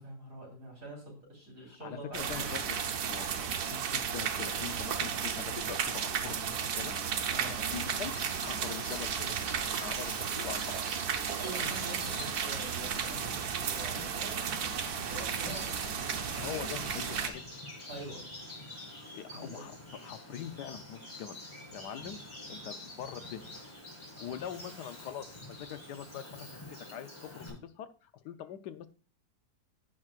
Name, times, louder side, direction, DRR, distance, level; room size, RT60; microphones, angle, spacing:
voice 1, 0.0-2.6 7.3-7.5 11.4-13.3 13.6-16.3 17.8-18.2 19.4-19.7 24.2-24.4, right 1 dB, 50° right, -1 dB, 4.2 m, -45 dB
voice 2, 1.7-3.3 3.7-7.0 7.5-8.1 8.4-9.4 9.8-11.0 16.3-17.4 19.1-19.8 20.0-21.4 21.7-22.2 22.5-23.5 24.2-26.6 26.9-28.9, left 10 dB, 85° left, 10 dB, 1.3 m, -43 dB
sound 1, 2.1-17.3, right 7 dB, 70° right, 1.3 m, -34 dB
Bird vocalization bird call bird song, 7.5-27.5, left 1 dB, 15° left, 3.8 m, -47 dB
15.5 x 6.0 x 2.4 m, 0.37 s
omnidirectional pair, 1.7 m